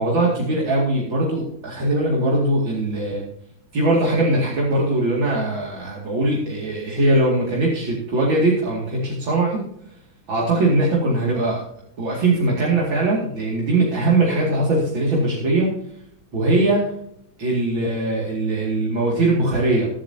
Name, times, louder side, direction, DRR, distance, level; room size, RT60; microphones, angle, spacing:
voice 1, 0.0-3.2 3.7-9.6 10.3-11.6 12.0-15.7 16.3-16.8 17.4-19.9, right 2 dB, 75° right, -4 dB, 3.2 m, -20 dB
21.5 x 7.7 x 2.8 m, 0.73 s
omnidirectional pair, 2.1 m